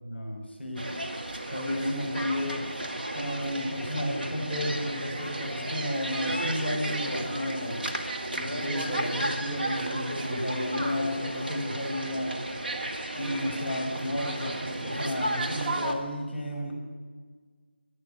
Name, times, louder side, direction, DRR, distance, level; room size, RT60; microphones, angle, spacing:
voice 1, 0.0-0.8 1.5-2.6 3.1-7.8 8.3-12.3 13.1-16.7, left 1 dB, ahead, -16 dB, 4.3 m, -32 dB
sound 1, 0.8-15.9, right 1 dB, 55° right, 2.0 m, -33 dB
12.0 x 11.5 x 10.0 m, 1.5 s
figure-of-eight pair, 175°, 6 cm